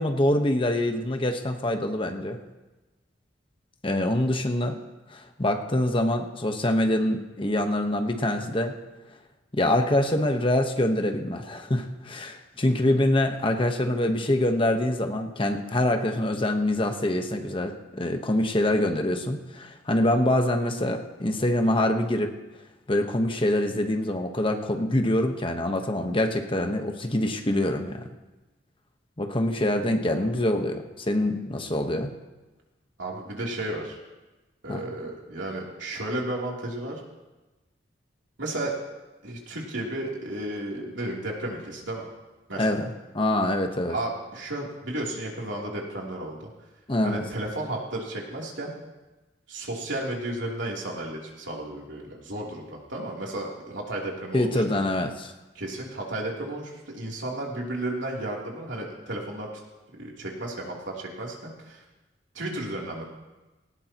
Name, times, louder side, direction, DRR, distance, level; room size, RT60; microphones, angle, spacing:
voice 1, 0.0-2.4 3.8-4.8 5.1-8.7 9.5-22.3 22.9-28.0 29.2-32.1 34.7-34.8 42.6-42.9 43.1-44.0 46.9-47.2 54.3-55.3, left 1 dB, 30° left, 5 dB, 1.1 m, -25 dB
voice 2, 33.0-34.0 34.6-37.0 38.4-38.8 39.2-42.1 42.5-42.7 43.9-46.4 47.0-48.7 49.5-54.8 55.5-59.5 59.9-61.8 62.3-63.1, right 1 dB, 85° right, -2 dB, 3.2 m, -33 dB
18.5 x 18.5 x 3.0 m, 1.1 s
head